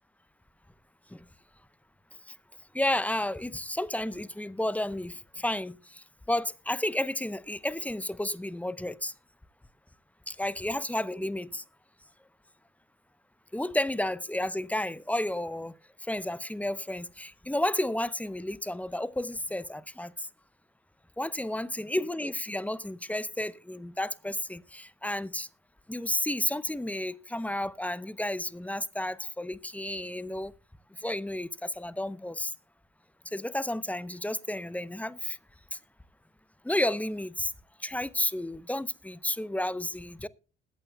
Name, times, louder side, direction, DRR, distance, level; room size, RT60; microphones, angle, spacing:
voice 1, 2.7-5.7 6.3-9.1 10.3-11.6 13.5-15.7 16.1-20.1 21.2-25.5 25.9-30.5 31.0-32.5 33.3-35.4 36.6-37.5 37.8-40.3, left 1 dB, 5° left, 0.7 m, -31 dB
20.5 x 8.8 x 2.2 m
supercardioid pair, 65°, 29 cm